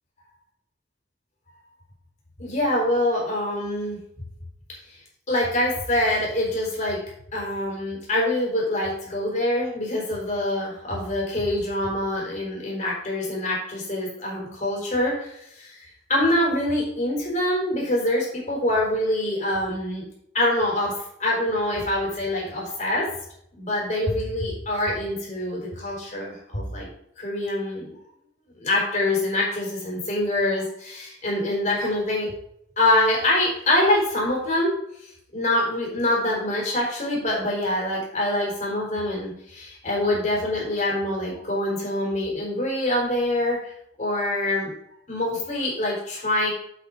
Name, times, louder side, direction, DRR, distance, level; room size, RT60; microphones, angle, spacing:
voice 1, 2.4-4.0 4.9-5.0 5.3-7.0 7.3-20.0 20.3-23.1 23.6-26.9 27.2-27.9 28.6-32.3 32.8-34.8 35.0-43.7 44.0-44.7 45.1-46.5, left 1 dB, 40° left, -3 dB, 4.3 m, -25 dB
8.6 x 7.9 x 4.0 m, 0.74 s
head